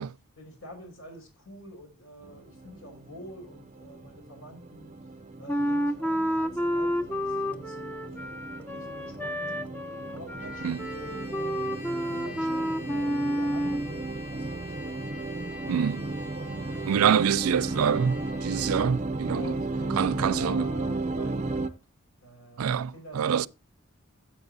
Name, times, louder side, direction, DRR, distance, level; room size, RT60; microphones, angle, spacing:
voice 1, 0.0-5.0 5.4-8.4 8.7-9.7 10.1-11.6 12.0-15.1 16.4-17.2 18.7-18.9 19.3-21.8 22.2-23.5, left 1 dB, 70° left, 5.5 m, -48 dB
sound 1, 2.2-21.7, right 2 dB, 30° right, 0.6 m, -35 dB
Wind instrument woodwind instrument, 5.5-13.9, equal, 5° left, 0.7 m, -30 dB
Trumpet, 10.4-18.9, left 4 dB, 50° left, 3.3 m, -47 dB
voice 2, 15.7-16.1 16.8-19.5 20.0-20.7 22.6-23.5, right 7 dB, 90° right, 0.4 m, -26 dB
13.5 x 7.5 x 2.7 m
head